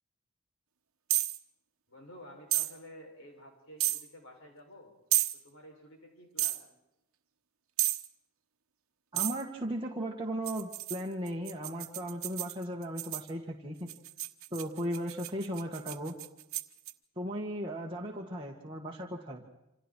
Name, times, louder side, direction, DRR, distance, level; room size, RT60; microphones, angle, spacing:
sound 1, 1.1-1.4 2.5-2.7 3.8-4.0 5.1-5.4 6.4-6.6 7.8-8.1 9.2-9.4 10.5-13.3 13.9-16.9, right 16 dB, 80° right, 1.2 m, -32 dB
voice 1, 1.9-4.9 5.3-6.6, equal, 70° left, 2 dB, 7.4 m, -52 dB
voice 2, 9.1-13.9 14.5-16.1 17.2-19.4, equal, 25° right, -3 dB, 2.0 m, -36 dB
28.5 x 26.5 x 4.7 m, 0.90 s
head